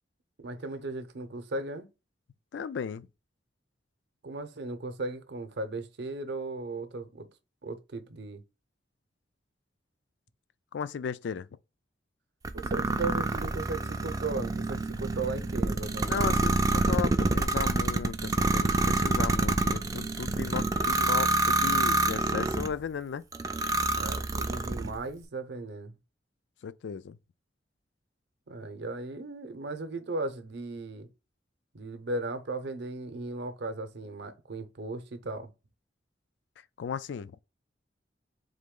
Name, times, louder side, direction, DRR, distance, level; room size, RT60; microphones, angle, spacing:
voice 1, 0.4-1.9 4.2-7.3 7.6-8.4 12.5-16.2 24.0-26.0 28.5-31.1 31.7-35.5, right 2 dB, 65° right, 0.7 m, -36 dB
voice 2, 2.5-3.1 10.7-11.5 16.1-23.2 26.6-27.2 36.8-37.3, left 6 dB, 70° left, 0.3 m, -35 dB
sound 1, 12.4-22.7 23.3-25.0, right 2 dB, 20° right, 0.3 m, -27 dB
3.9 x 3.0 x 3.6 m
head